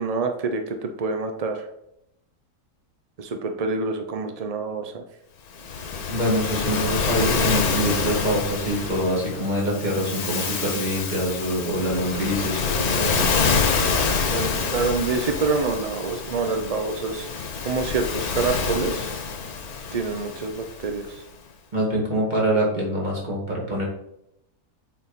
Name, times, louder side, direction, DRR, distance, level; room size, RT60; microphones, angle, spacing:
voice 1, 0.0-1.6 3.2-5.0 14.3-17.3 17.6-19.1 19.9-21.2, right 4 dB, 70° right, 5 dB, 0.3 m, -26 dB
Waves surf, 5.5-21.0, left 5 dB, 75° left, 1.5 m, -27 dB
voice 2, 6.1-13.2 21.7-23.9, equal, 30° right, -4 dB, 2.1 m, -25 dB
7.0 x 4.7 x 4.0 m, 0.80 s
omnidirectional pair, 1.6 m